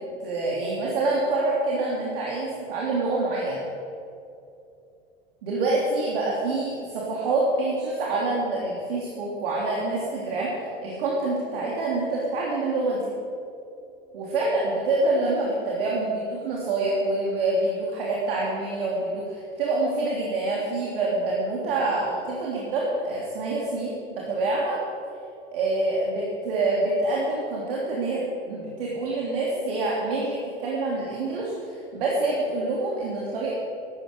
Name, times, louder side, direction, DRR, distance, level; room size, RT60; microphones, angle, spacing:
voice 1, 0.0-3.6 5.4-13.1 14.1-24.8 25.5-33.5, right 2 dB, 65° right, -4 dB, 3.0 m, -26 dB
14.5 x 12.0 x 6.6 m, 2.6 s
figure-of-eight pair, 80°, 31 cm